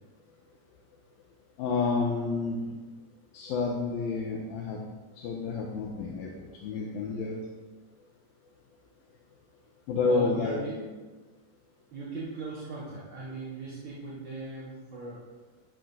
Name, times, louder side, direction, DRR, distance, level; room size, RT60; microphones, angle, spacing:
voice 1, 1.6-2.6 3.3-4.8 5.2-6.3 6.6-7.3 9.9-10.9, left 4 dB, 80° left, -1 dB, 3.1 m, -29 dB
voice 2, 10.0-10.8 11.9-15.2, right 2 dB, 35° right, -11 dB, 5.2 m, -39 dB
15.5 x 13.0 x 4.1 m, 1.3 s
omnidirectional pair, 4.2 m